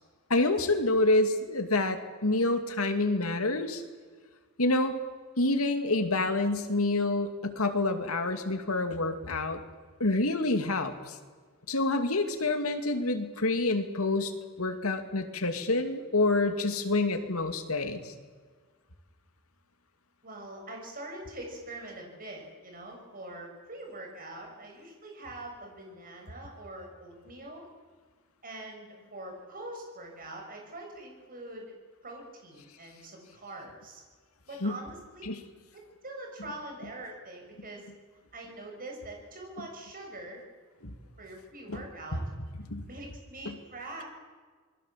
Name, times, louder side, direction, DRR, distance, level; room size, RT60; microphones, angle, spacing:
voice 1, 0.3-3.8 4.6-5.0 5.4-9.6 10.0-11.1 11.7-14.3 14.6-18.1 34.6-34.8 35.2-35.4 40.8-41.0 41.7-41.8 42.1-42.2 42.7-42.9 43.5-43.6, left 2 dB, 80° left, 7 dB, 2.4 m, -27 dB
voice 2, 20.2-27.6 28.4-31.7 32.0-34.0 34.5-35.2 36.0-37.9 38.3-40.4 41.2-42.2 42.8-44.0, right 1 dB, 40° right, 1 dB, 7.0 m, -43 dB
27.0 x 21.5 x 7.5 m, 1.5 s
head